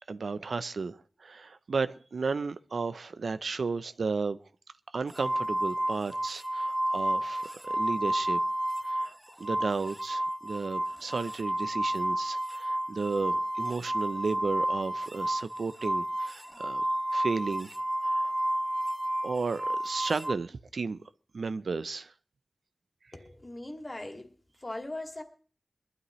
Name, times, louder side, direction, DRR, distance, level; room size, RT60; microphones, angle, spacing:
voice 1, 0.1-4.4 4.9-8.4 8.8-9.1 9.4-16.8 17.1-17.7 18.0-18.3 19.2-21.0 21.3-22.1, right 4 dB, 80° right, 0.6 m, -33 dB
sound 1, 5.1-9.1 9.4-20.3, right 1 dB, 10° right, 0.5 m, -31 dB
voice 2, 23.1-24.3 24.6-25.2, left 1 dB, 30° left, 2.3 m, -39 dB
22.5 x 12.5 x 3.1 m
wide cardioid pair, 95°, 0 cm